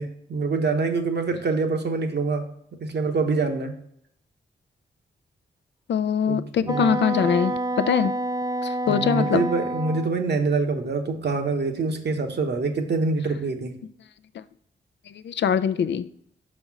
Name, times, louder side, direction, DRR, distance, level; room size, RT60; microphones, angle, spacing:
voice 1, 0.0-3.8 6.3-7.0 8.9-13.8, right 4 dB, 60° right, 4 dB, 1.0 m, -25 dB
voice 2, 5.9-7.6 7.9-8.1 8.6-9.5 14.3-14.4 15.2-16.1, left 8 dB, 65° left, 13 dB, 0.4 m, -23 dB
Wind instrument woodwind instrument, 6.7-10.1, right 1 dB, 20° right, 0.5 m, -28 dB
5.5 x 4.3 x 5.8 m, 0.71 s
cardioid pair, 50°, 19 cm